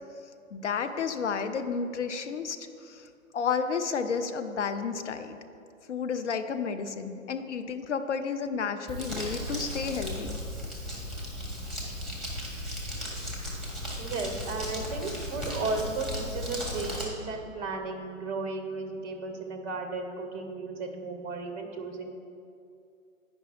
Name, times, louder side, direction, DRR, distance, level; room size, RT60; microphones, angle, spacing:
voice 1, 0.5-3.1 3.3-5.4 5.9-10.4, left 6 dB, 60° left, 8 dB, 0.7 m, -31 dB
Crumpling crinkling, 8.9-17.0, equal, ahead, 1.3 m, -36 dB
voice 2, 14.0-22.1, right 3 dB, 15° right, 4 dB, 0.6 m, -34 dB
9.3 x 5.4 x 4.4 m, 2.5 s
figure-of-eight pair, 120°, 41 cm